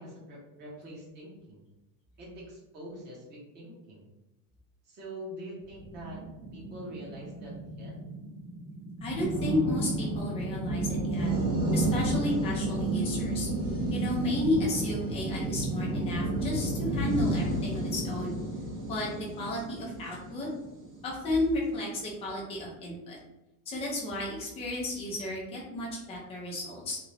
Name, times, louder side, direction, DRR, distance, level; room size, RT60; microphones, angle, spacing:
voice 1, 0.0-1.6 2.2-4.1 4.8-6.2 6.5-8.0, right 1 dB, 25° right, -5 dB, 0.8 m, -44 dB
sound 1, 5.8-21.2, right 1 dB, 50° right, 1.0 m, -32 dB
voice 2, 9.0-11.3 11.7-13.5 13.9-18.4 18.9-20.5 21.0-23.2 23.7-27.0, left 1 dB, 15° left, -4 dB, 0.4 m, -33 dB
2.4 x 2.1 x 3.1 m, 0.96 s
cardioid pair, 170°, 41 cm